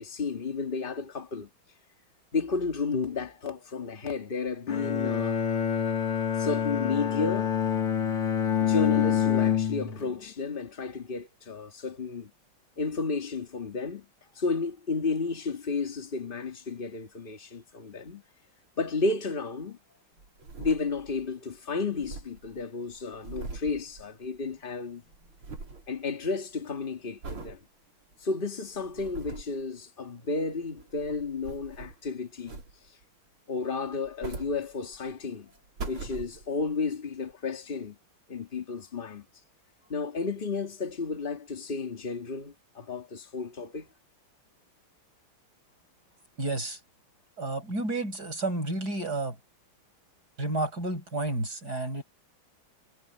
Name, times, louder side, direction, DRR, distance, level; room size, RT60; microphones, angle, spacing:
voice 1, 0.0-1.5 2.3-5.4 6.4-7.6 8.6-12.3 12.8-14.1 14.4-18.2 18.8-19.8 20.6-25.0 25.9-27.6 28.2-32.6 33.5-35.5 35.9-38.0 38.3-39.3 39.9-43.9, left 4 dB, 25° left, 2.1 m, -32 dB
Bowed string instrument, 4.7-10.1, left 8 dB, 90° left, 2.8 m, -26 dB
sound 1, 20.2-21.3 21.6-21.7 21.8-24.6 24.9-25.9 26.3-26.7 27.2-27.6 28.1-28.2 28.7-29.6 30.6-32.1 32.4-33.0 33.9-35.1 35.5-36.7 37.3-37.4, right 3 dB, 80° right, 4.9 m, -42 dB
voice 2, 46.4-46.8 47.4-49.4 50.4-52.0, right 2 dB, 45° right, 8.5 m, -31 dB
omnidirectional pair, 2.3 m